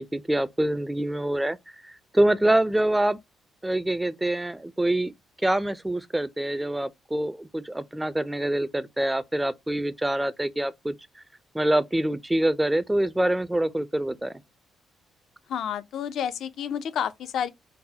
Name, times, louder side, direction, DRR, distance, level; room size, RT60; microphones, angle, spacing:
voice 1, 0.0-1.6 1.8-3.2 3.6-5.1 5.4-10.9 11.5-14.3, right 1 dB, 10° right, 0.4 m, -25 dB
voice 2, 15.5-17.5, left 8 dB, 70° left, 0.4 m, -30 dB
3.9 x 2.1 x 2.7 m
cardioid pair, 90°, 0 cm